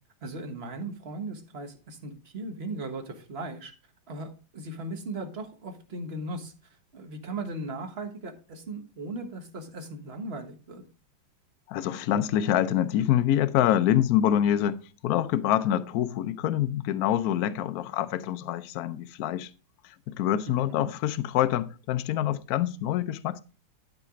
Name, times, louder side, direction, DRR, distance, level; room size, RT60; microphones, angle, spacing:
voice 1, 0.2-3.7 4.1-6.5 6.9-10.8 20.5-20.9, right 2 dB, 35° right, 1.4 m, -37 dB
voice 2, 11.7-19.5 19.8-23.4, left 11 dB, 70° left, 0.9 m, -26 dB
11.5 x 5.1 x 3.7 m
omnidirectional pair, 2.2 m